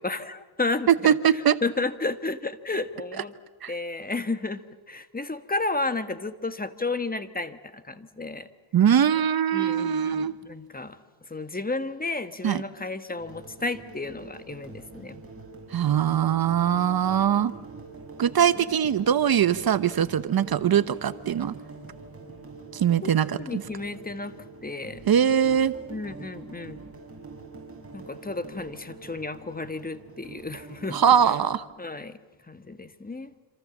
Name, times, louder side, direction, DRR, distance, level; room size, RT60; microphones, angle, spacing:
voice 1, 0.0-3.3 3.7-8.5 9.5-11.0 11.3-15.2 23.0-24.3 24.6-25.0 25.9-26.8 27.9-31.0 31.8-32.1 32.5-33.3, left 3 dB, 20° left, 10 dB, 1.5 m, -32 dB
voice 2, 0.9-1.6 3.6-3.7 8.7-10.3 12.4-12.6 15.7-17.5 18.2-21.5 22.7-23.6 25.1-25.7 30.9-31.6, right 9 dB, 50° right, 14 dB, 1.0 m, -22 dB
sound 1, 13.2-31.6, right 3 dB, 30° right, 6.8 m, -44 dB
27.0 x 26.5 x 7.3 m, 1.2 s
cardioid pair, 90°, 47 cm